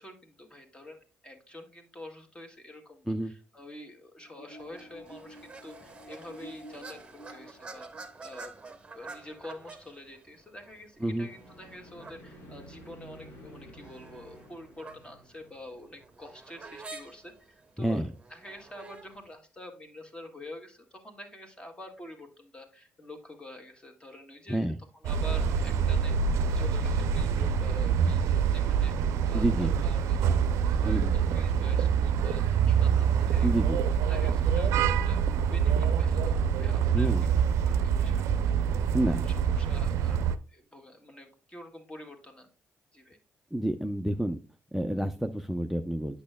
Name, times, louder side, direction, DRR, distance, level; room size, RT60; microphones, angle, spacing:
voice 1, 0.0-18.0 18.3-24.7 25.0-26.1 26.5-30.4 30.6-33.6 34.1-38.2 38.6-38.8 39.2-42.5 42.9-43.2, left 1 dB, 20° left, 4 dB, 1.7 m, -47 dB
sound 1, 4.2-8.5 11.1-16.1, equal, 85° left, 2.5 m, -51 dB
sound 2, 4.6-19.3, right 3 dB, 25° right, 1.0 m, -49 dB
voice 2, 17.8-18.1 24.5-24.8 29.3-29.7 30.8-31.1 33.4-33.8 36.9-37.2 38.9-39.3 43.5-44.4 44.7-46.2, right 1 dB, ahead, 6 dB, 0.5 m, -29 dB
sound 3, 25.0-40.4, right 7 dB, 80° right, 0.4 m, -25 dB
8.4 x 6.2 x 2.2 m, 0.35 s
cardioid pair, 80°, 5 cm